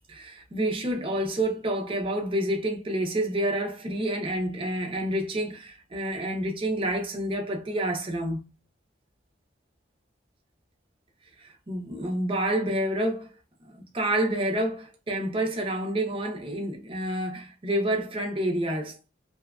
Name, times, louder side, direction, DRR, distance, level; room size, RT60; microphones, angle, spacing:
voice 1, 0.1-8.4 11.4-13.3 13.7-19.0, right 1 dB, 30° right, 0.6 m, -28 dB
2.7 x 2.3 x 2.3 m
head